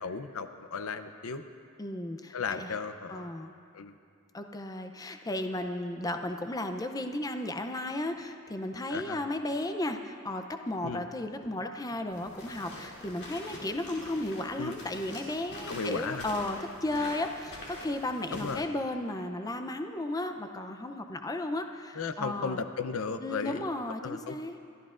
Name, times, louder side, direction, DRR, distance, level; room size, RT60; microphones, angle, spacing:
voice 1, 0.0-1.4 2.3-3.3 3.7-3.9 8.9-9.2 10.8-11.0 14.6-14.7 15.7-16.3 16.9-17.0 18.3-18.7 21.9-23.7 24.0-24.4, left 5 dB, 85° left, 10 dB, 0.6 m, -35 dB
voice 2, 1.8-2.7 3.1-3.5 4.3-22.6 23.2-24.6, left 1 dB, 15° left, 6 dB, 0.5 m, -34 dB
sound 1, 12.1-18.6, left 1 dB, 50° left, 2.7 m, -45 dB
23.5 x 13.5 x 2.5 m, 2.3 s
head